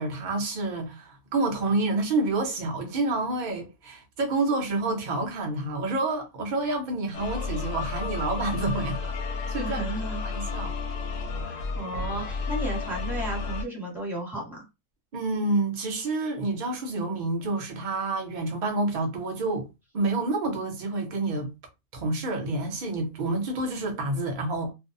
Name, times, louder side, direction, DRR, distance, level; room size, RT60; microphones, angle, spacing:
voice 1, 0.0-9.2 9.5-9.8 10.2-10.7 15.1-19.7 19.9-21.5 21.9-24.7, right 2 dB, 60° right, 0.5 m, -28 dB
sound 1, 7.1-13.6, left 4 dB, 65° left, 0.8 m, -32 dB
voice 2, 9.6-10.2 11.4-14.6, right 1 dB, ahead, 1.0 m, -34 dB
2.5 x 2.1 x 2.6 m
omnidirectional pair, 1.7 m